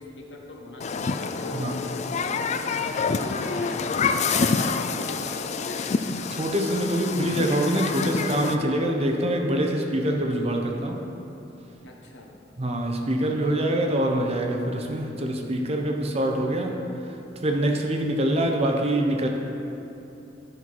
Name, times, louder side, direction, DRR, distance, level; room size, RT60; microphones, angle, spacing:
voice 1, 0.0-6.1 11.7-12.3, left 2 dB, 80° left, 0 dB, 1.2 m, -41 dB
Human group actions, 0.8-8.6, left 5 dB, 40° left, 0.4 m, -27 dB
voice 2, 6.2-11.0 12.6-16.8 17.4-19.3, right 1 dB, 35° right, 2 dB, 0.8 m, -25 dB
11.0 x 5.7 x 4.6 m, 2.9 s
head